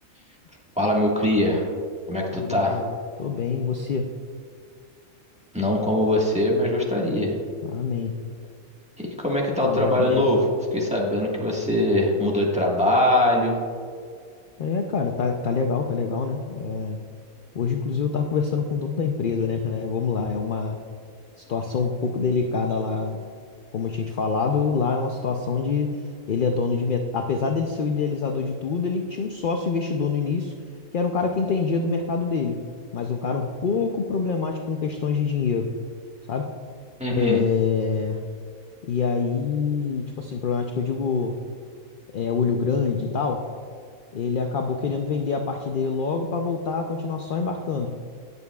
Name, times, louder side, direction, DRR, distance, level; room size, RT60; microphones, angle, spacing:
voice 1, 0.8-1.6 2.1-2.8 5.5-7.3 9.0-10.5 10.7-13.6 37.0-37.4, left 1 dB, 5° right, -4 dB, 1.4 m, -22 dB
voice 2, 2.3-4.1 7.6-8.1 9.6-10.3 14.6-17.0 17.5-20.8 21.4-23.2 23.7-25.9 26.3-30.5 30.9-32.6 32.9-35.7 36.3-36.5 37.1-38.2 38.8-41.3 42.1-43.4 44.1-47.9, left 5 dB, 55° left, 4 dB, 0.5 m, -25 dB
19.0 x 7.0 x 2.3 m, 2.1 s
omnidirectional pair, 1.5 m